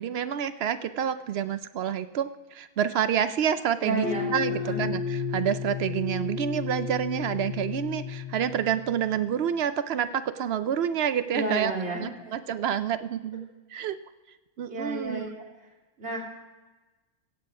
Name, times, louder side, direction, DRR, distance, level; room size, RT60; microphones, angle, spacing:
voice 1, 0.0-4.1 4.3-11.7 12.0-14.0 14.6-15.3, right 9 dB, 65° right, 12 dB, 0.6 m, -28 dB
voice 2, 3.8-4.9 11.3-12.0 14.7-15.5 16.0-16.2, right 1 dB, 45° right, -3 dB, 3.0 m, -31 dB
sound 1, 4.0-9.2, left 6 dB, 5° left, 0.6 m, -33 dB
16.0 x 8.0 x 4.7 m, 1.2 s
omnidirectional pair, 1.6 m